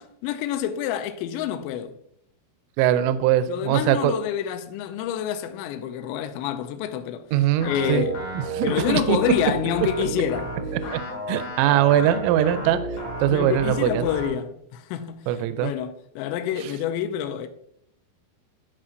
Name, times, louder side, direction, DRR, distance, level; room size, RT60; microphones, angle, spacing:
voice 1, 0.0-1.9 3.5-8.3 8.6-10.6 13.3-17.5, left 9 dB, 85° left, 2.6 m, -28 dB
voice 2, 2.8-4.1 7.3-8.0 8.5-9.2 11.3-12.8 13.2-14.0 15.3-15.7, right 11 dB, 85° right, 3.0 m, -21 dB
sound 1, 7.6-14.3, right 2 dB, 50° left, 3.2 m, -32 dB
11.0 x 6.0 x 2.6 m
omnidirectional pair, 5.6 m